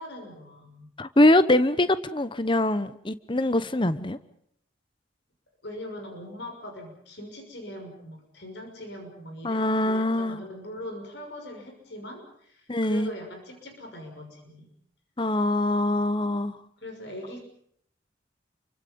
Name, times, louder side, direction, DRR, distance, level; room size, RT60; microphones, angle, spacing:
voice 1, 0.0-0.9 5.6-14.7 16.8-17.5, left 1 dB, 60° left, 3 dB, 6.3 m, -41 dB
voice 2, 1.0-4.2 9.4-10.4 12.7-13.1 15.2-16.6, left 1 dB, 25° left, 14 dB, 0.9 m, -23 dB
29.0 x 24.5 x 5.4 m, 0.66 s
head